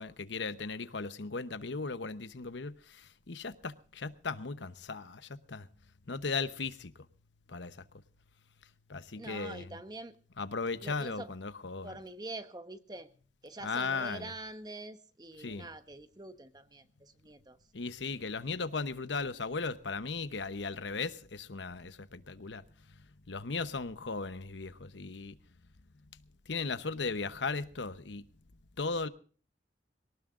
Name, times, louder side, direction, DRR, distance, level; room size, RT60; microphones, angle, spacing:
voice 1, 0.0-5.7 6.1-7.0 7.5-7.8 8.9-9.8 10.4-12.0 13.6-14.3 15.4-15.7 17.7-22.6 22.9-23.0 23.3-25.4 26.5-28.2 28.8-29.1, left 4 dB, 80° left, 0.9 m, -37 dB
voice 2, 9.1-10.1 10.8-11.3 11.8-13.1 13.4-17.6, right 2 dB, 20° right, 1.1 m, -45 dB
22.5 x 18.5 x 2.5 m
head